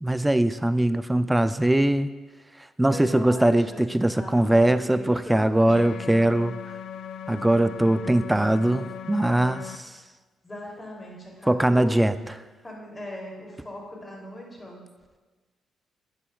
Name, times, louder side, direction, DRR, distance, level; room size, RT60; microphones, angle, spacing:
voice 1, 0.0-2.1 2.8-6.6 7.3-9.9 11.5-12.1, right 1 dB, 10° right, 12 dB, 0.4 m, -21 dB
voice 2, 2.9-3.8 4.1-5.5 10.4-12.0 12.6-14.8, left 1 dB, 20° left, -2 dB, 2.8 m, -40 dB
sound 1, 5.7-9.8, left 8 dB, 80° left, 0.4 m, -38 dB
12.5 x 8.6 x 2.3 m, 1.3 s
cardioid pair, 90°, 0 cm